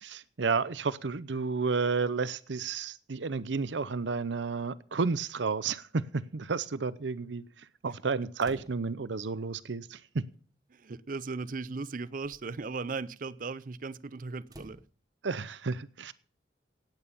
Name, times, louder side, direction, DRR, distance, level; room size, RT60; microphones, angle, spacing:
voice 1, 0.0-7.4 7.8-10.2 15.2-16.1, right 4 dB, 90° right, 0.7 m, -31 dB
sound 1, 8.4-9.1 10.3-10.4 11.3-11.5 12.1-12.7 14.4-14.9, right 1 dB, 20° right, 1.3 m, -51 dB
voice 2, 10.7-14.8, right 4 dB, 50° right, 0.5 m, -37 dB
17.0 x 9.1 x 5.4 m
head